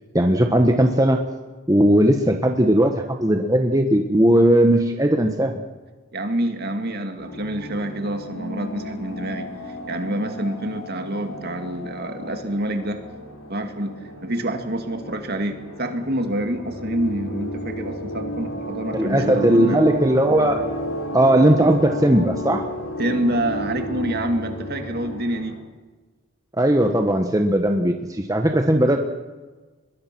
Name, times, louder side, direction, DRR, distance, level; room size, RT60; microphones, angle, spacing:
voice 1, 0.1-1.2 1.7-5.6 18.9-20.6 21.1-22.7 26.6-29.0, right 1 dB, 15° right, 4 dB, 1.2 m, -18 dB
voice 2, 6.1-9.5 9.9-13.0 13.5-19.8 23.0-25.6, right 1 dB, 50° right, 6 dB, 2.3 m, -27 dB
sound 1, 7.2-25.6, equal, 80° left, 4.7 m, -33 dB
23.5 x 21.5 x 6.1 m, 1.3 s
head